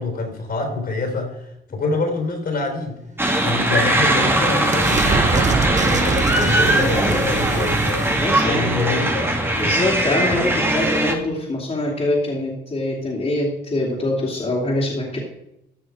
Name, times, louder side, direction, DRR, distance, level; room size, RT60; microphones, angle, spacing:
voice 1, 0.0-3.0 3.4-8.1 8.4-9.3, left 3 dB, 50° left, 4 dB, 3.6 m, -26 dB
sound 1, 3.2-11.1, right 1 dB, 10° right, 1.8 m, -20 dB
sound 2, 3.6-10.0, right 5 dB, 35° right, 0.9 m, -26 dB
voice 2, 8.2-9.0 9.5-15.2, left 2 dB, 30° left, -4 dB, 2.8 m, -24 dB
14.0 x 6.3 x 4.8 m, 0.84 s
cardioid pair, 90°, 20 cm